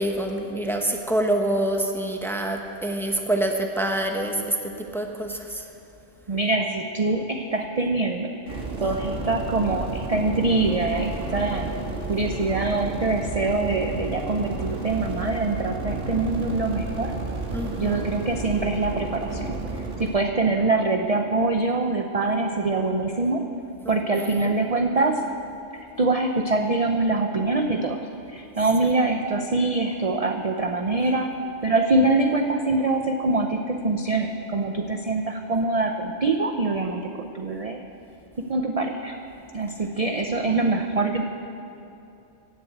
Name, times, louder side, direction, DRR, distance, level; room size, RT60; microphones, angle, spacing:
voice 1, 0.0-5.6 17.5-18.1 23.8-24.5, right 1 dB, ahead, 3 dB, 1.0 m, -26 dB
voice 2, 6.3-11.7 12.1-17.1 17.8-19.6 20.0-23.5 23.9-25.3 26.0-28.0 28.3-31.3 31.6-37.8 38.4-39.2 39.5-41.2, right 3 dB, 40° right, 4 dB, 0.6 m, -24 dB
sound 1, 8.5-20.1, right 3 dB, 90° right, 2.1 m, -32 dB
17.0 x 7.8 x 8.0 m, 2.7 s
omnidirectional pair, 1.3 m